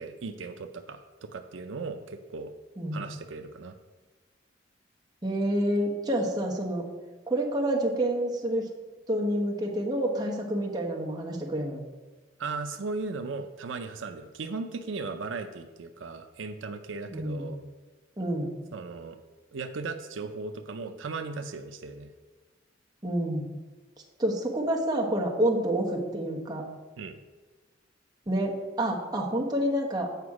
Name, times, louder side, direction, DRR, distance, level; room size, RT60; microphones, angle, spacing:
voice 1, 0.0-2.5 2.9-3.7 12.4-17.6 18.7-19.2 19.5-22.1 27.0-27.2, right 4 dB, 80° right, 7 dB, 0.5 m, -37 dB
voice 2, 5.2-6.8 7.3-8.6 9.1-11.8 17.1-17.5 18.2-18.5 23.0-23.5 24.2-26.6 28.3-30.1, right 1 dB, 20° right, -2 dB, 1.1 m, -28 dB
8.1 x 5.0 x 4.8 m, 1.3 s
head